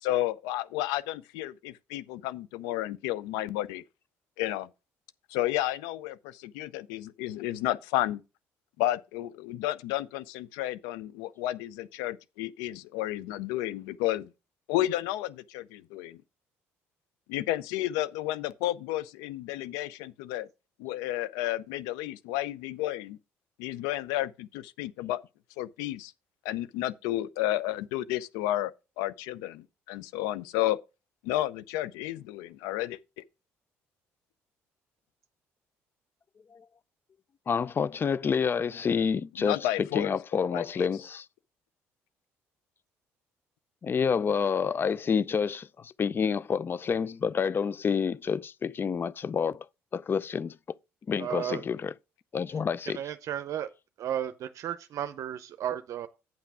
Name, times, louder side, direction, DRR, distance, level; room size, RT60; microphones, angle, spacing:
voice 1, 0.0-3.8 4.4-4.7 5.3-8.2 8.8-14.3 14.7-16.2 17.3-20.5 20.8-23.2 23.6-25.2 25.6-26.1 26.4-28.7 29.0-30.8 31.2-33.0 39.4-40.9, left 14 dB, 90° left, 0.5 m, -32 dB
voice 2, 37.5-41.3 43.8-49.7 49.9-50.6 51.1-51.9 52.3-53.0, left 6 dB, 35° left, 0.4 m, -28 dB
voice 3, 51.2-51.6 52.9-53.7 54.0-56.1, right 10 dB, 60° right, 0.6 m, -34 dB
8.7 x 6.0 x 4.8 m
supercardioid pair, 75°, 6 cm